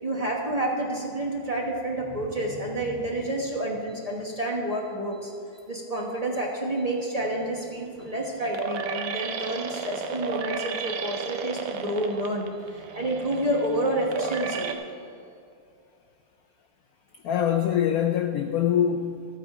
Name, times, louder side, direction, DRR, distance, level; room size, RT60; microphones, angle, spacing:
voice 1, 0.0-5.3 5.7-14.7, right 1 dB, 25° right, -2 dB, 1.0 m, -29 dB
sound 1, 7.2-14.7, right 6 dB, 60° right, 0.9 m, -34 dB
voice 2, 17.2-19.4, left 9 dB, 80° left, 6 dB, 0.8 m, -24 dB
13.5 x 8.3 x 4.9 m, 2.4 s
omnidirectional pair, 2.2 m